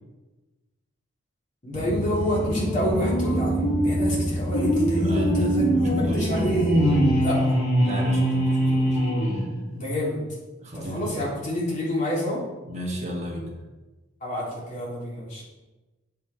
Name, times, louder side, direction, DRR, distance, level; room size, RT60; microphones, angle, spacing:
voice 1, 1.6-6.8 7.2-7.6 9.7-10.2 10.7-12.4 14.2-15.4, equal, 40° left, -6 dB, 3.4 m, -28 dB
sound 1, 1.7-7.2, equal, 10° left, 1.2 m, -28 dB
sound 2, 2.4-9.9, equal, 75° left, 3.5 m, -24 dB
voice 2, 4.9-6.3 7.8-9.0 9.3-9.5 10.6-11.2 12.6-13.5, right 1 dB, 35° right, -1 dB, 1.7 m, -34 dB
8.6 x 8.2 x 4.4 m, 1.2 s
head